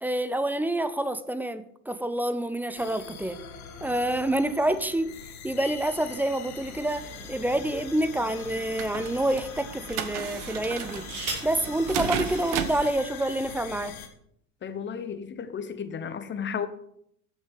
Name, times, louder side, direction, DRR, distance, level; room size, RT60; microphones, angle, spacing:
voice 1, 0.0-3.4 3.8-5.2 5.4-11.1 11.4-14.0, right 1 dB, 5° right, 0.5 m, -27 dB
sound 1, 2.8-14.1, left 7 dB, 70° left, 1.7 m, -43 dB
sound 2, 6.7-12.9, right 9 dB, 45° right, 1.2 m, -35 dB
sound 3, 7.2-8.1 8.8-8.9 10.6-11.6 12.8-12.9 13.2-13.6, right 3 dB, 75° right, 5.7 m, -38 dB
voice 2, 14.6-16.7, left 7 dB, 25° left, 1.1 m, -33 dB
14.5 x 6.2 x 5.0 m
figure-of-eight pair, 80°, 44 cm